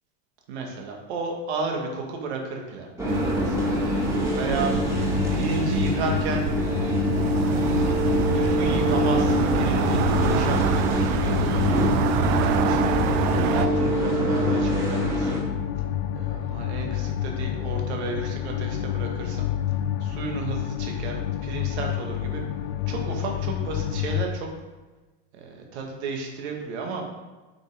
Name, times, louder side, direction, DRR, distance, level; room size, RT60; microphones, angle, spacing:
voice 1, 0.5-6.5 7.2-7.9 8.2-15.4 16.1-19.5 20.0-22.4 22.9-24.5 25.3-27.1, right 4 dB, 80° right, 1 dB, 2.1 m, -33 dB
sound 1, 3.0-15.4, equal, 10° right, 1.8 m, -25 dB
sound 2, 3.1-13.7, right 10 dB, 35° right, 0.4 m, -27 dB
sound 3, 4.8-24.3, left 11 dB, 70° left, 0.7 m, -29 dB
7.9 x 5.6 x 5.2 m, 1.2 s
supercardioid pair, 165°, 33 cm